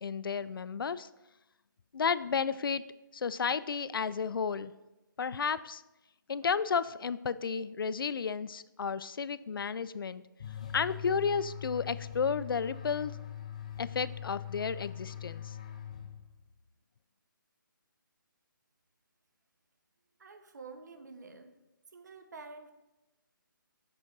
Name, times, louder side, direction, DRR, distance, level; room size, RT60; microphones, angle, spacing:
voice 1, 0.0-1.1 1.9-2.8 3.1-4.7 5.2-5.8 6.3-10.2 10.7-13.1 13.8-15.6, left 6 dB, 90° left, 16 dB, 0.4 m, -32 dB
sound 1, 10.4-16.5, left 10 dB, 20° left, 0.4 m, -42 dB
voice 2, 20.2-21.5 21.9-22.7, right 4 dB, 55° right, 8 dB, 0.9 m, -48 dB
7.7 x 3.8 x 6.0 m, 0.98 s
hypercardioid pair, 170°, 11 cm